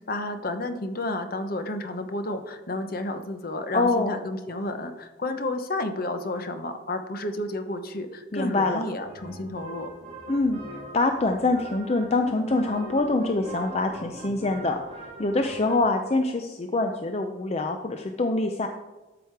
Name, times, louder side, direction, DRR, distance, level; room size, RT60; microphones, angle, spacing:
voice 1, 0.1-9.9, left 2 dB, 50° left, 8 dB, 0.9 m, -31 dB
voice 2, 3.7-4.1 8.3-8.8 10.3-14.8 15.2-18.7, left 2 dB, 35° left, 5 dB, 0.5 m, -25 dB
sound 1, 8.9-15.8, right 1 dB, 35° right, 3.0 m, -41 dB
12.5 x 6.2 x 4.7 m, 1.2 s
head